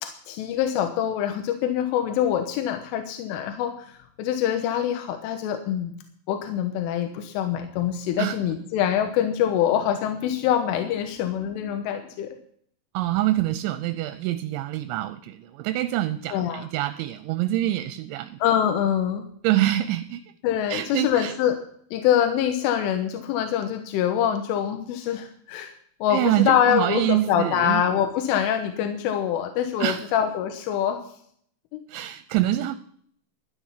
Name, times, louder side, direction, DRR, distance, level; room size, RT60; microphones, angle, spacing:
voice 1, 0.0-3.9 4.2-5.9 6.3-12.3 16.3-16.7 18.4-19.2 20.4-21.6 21.9-25.7 26.0-31.0 31.7-31.8, left 10 dB, 85° left, 5 dB, 3.6 m, -24 dB
voice 2, 12.9-18.4 19.4-20.2 20.7-21.3 26.1-27.8 29.8-30.0 31.9-32.7, right 14 dB, 80° right, 11 dB, 2.9 m, -25 dB
13.0 x 10.5 x 5.7 m, 0.63 s
omnidirectional pair, 5.6 m